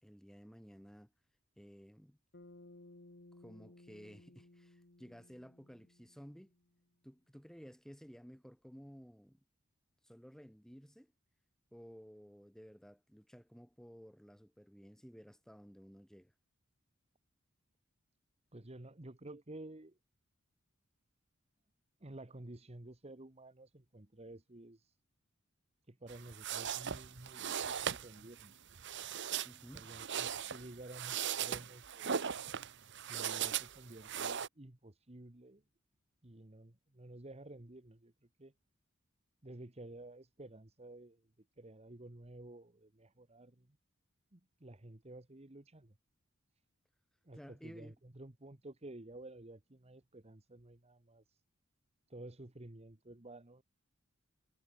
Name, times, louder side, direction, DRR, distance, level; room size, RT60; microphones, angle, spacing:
voice 1, 0.0-1.1 1.6-2.2 3.4-6.5 7.0-9.4 10.0-11.1 11.7-16.3 29.4-29.9 47.3-48.0, equal, 5° left, 4.2 m, -55 dB
Bass guitar, 2.3-6.8, left 2 dB, 55° left, 1.9 m, -59 dB
voice 2, 18.5-20.0 22.0-24.9 25.9-28.5 29.7-32.1 33.1-35.6 36.2-38.1 38.4-38.5 39.4-43.8 44.3-46.0 47.2-51.4 52.1-53.6, right 1 dB, 30° right, 1.5 m, -52 dB
sound 1, 26.1-34.5, right 8 dB, 60° right, 1.0 m, -39 dB
head